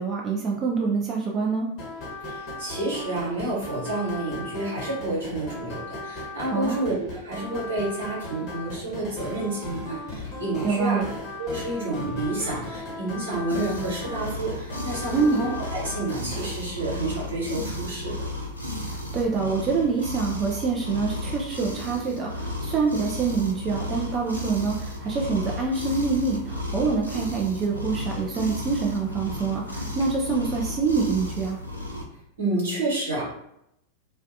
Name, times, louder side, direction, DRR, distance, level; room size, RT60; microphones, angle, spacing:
voice 1, 0.0-1.7 6.5-6.8 10.6-11.0 15.1-15.5 18.9-31.6, right 4 dB, 25° right, -2 dB, 0.3 m, -26 dB
sound 1, 1.8-16.5, left 2 dB, 35° left, 0.8 m, -37 dB
voice 2, 2.2-11.0 11.4-18.1 32.4-33.2, right 2 dB, 70° right, -6 dB, 1.1 m, -29 dB
sound 2, 13.5-32.0, left 1 dB, 90° left, 0.4 m, -34 dB
2.3 x 2.1 x 2.6 m, 0.77 s
figure-of-eight pair, 90°, 0 cm